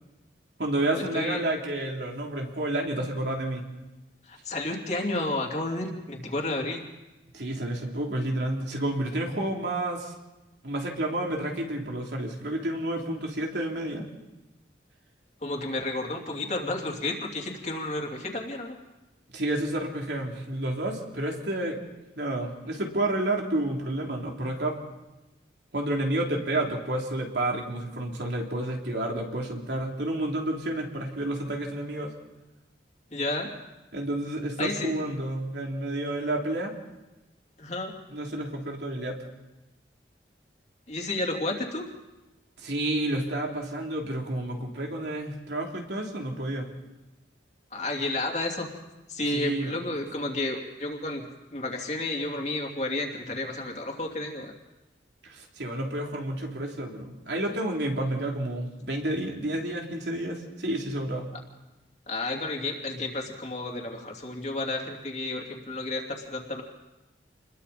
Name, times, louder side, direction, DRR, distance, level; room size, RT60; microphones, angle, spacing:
voice 1, 0.6-3.6 7.3-10.1 10.6-14.1 19.3-21.8 22.2-24.8 25.7-32.1 33.9-36.7 38.1-39.2 42.6-46.7 49.3-49.7 55.2-61.3, right 1 dB, 70° right, 0 dB, 3.3 m, -30 dB
voice 2, 4.3-6.8 15.4-18.8 33.1-33.5 34.6-34.9 37.6-37.9 40.9-41.8 47.7-48.7 49.1-51.2 51.5-54.5 62.1-66.6, left 2 dB, 40° left, 1 dB, 2.9 m, -31 dB
28.5 x 21.5 x 4.2 m, 1.0 s
head